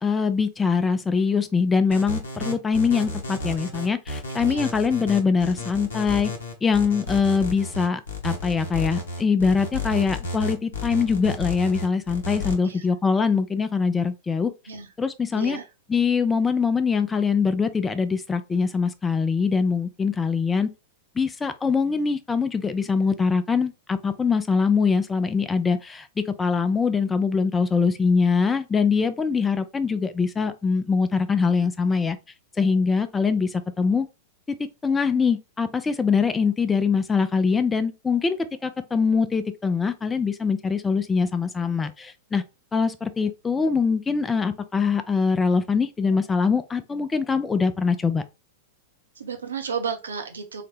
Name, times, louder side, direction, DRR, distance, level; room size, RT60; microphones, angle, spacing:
voice 1, 0.0-6.3 6.6-14.5 15.0-15.6 15.9-20.7 21.2-32.2 32.6-34.1 34.5-38.4 38.6-42.4 42.7-48.2, left 5 dB, 15° left, 0.4 m, -23 dB
sound 1, 1.9-12.5, left 2 dB, 70° left, 0.9 m, -32 dB
voice 2, 15.3-15.7 49.2-50.6, right 6 dB, 75° right, 0.7 m, -32 dB
3.8 x 2.1 x 3.2 m
figure-of-eight pair, 95°, 0 cm